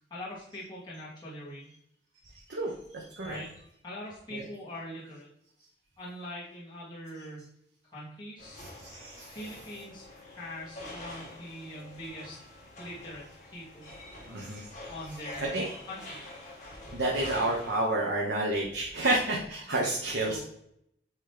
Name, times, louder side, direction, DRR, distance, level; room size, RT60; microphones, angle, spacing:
voice 1, 0.1-1.7 3.2-3.5 3.8-5.3 6.0-7.5 7.9-8.6 9.3-13.9 14.9-16.2 20.3-20.4, left 1 dB, 25° left, -9 dB, 1.9 m, -43 dB
voice 2, 2.5-3.4 4.3-4.4 8.6-9.3 14.3-14.7 15.4-15.7 16.9-20.4, right 2 dB, 70° right, -2 dB, 0.9 m, -30 dB
sound 1, 8.4-17.8, left 1 dB, 40° left, 1.9 m, -46 dB
9.0 x 3.1 x 3.4 m, 0.74 s
head